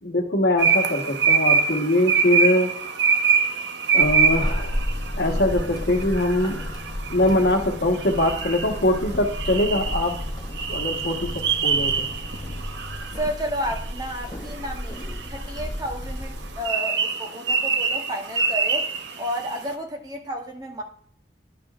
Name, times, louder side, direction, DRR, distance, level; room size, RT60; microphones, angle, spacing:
voice 1, 0.0-2.8 3.9-4.8 5.2-6.6 7.1-10.2 10.7-12.1, left 1 dB, 70° left, 3 dB, 1.1 m, -22 dB
sound 1, 0.6-19.6, right 6 dB, 80° right, 0.6 m, -25 dB
Walk footsteps / Squeak, 4.0-16.7, left 1 dB, 25° left, 0.5 m, -32 dB
voice 2, 13.2-18.9 19.2-20.8, equal, 20° right, 3 dB, 0.8 m, -31 dB
11.0 x 5.1 x 2.4 m, 0.62 s
head